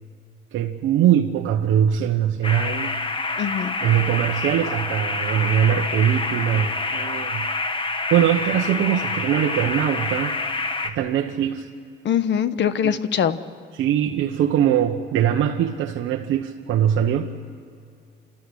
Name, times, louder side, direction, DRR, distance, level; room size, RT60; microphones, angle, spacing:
voice 1, 0.5-2.9 3.8-10.3 10.8-11.7 12.8-12.9 13.8-17.5, right 10 dB, 85° right, 2 dB, 1.1 m, -22 dB
sound 1, 2.4-10.9, left 3 dB, 25° left, 1.6 m, -27 dB
voice 2, 3.4-3.7 12.0-13.4, left 8 dB, 65° left, 12 dB, 1.2 m, -22 dB
29.0 x 13.5 x 10.0 m, 2.3 s
cardioid pair, 90°, 20 cm